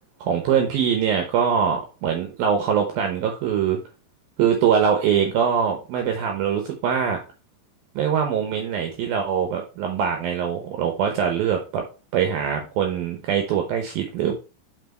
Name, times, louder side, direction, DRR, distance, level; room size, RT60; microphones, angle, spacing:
voice 1, 0.3-3.8 4.4-7.2 8.0-11.8 12.1-14.3, right 8 dB, 75° right, 4 dB, 2.3 m, -23 dB
5.9 x 5.9 x 4.4 m, 0.32 s
omnidirectional pair, 5.3 m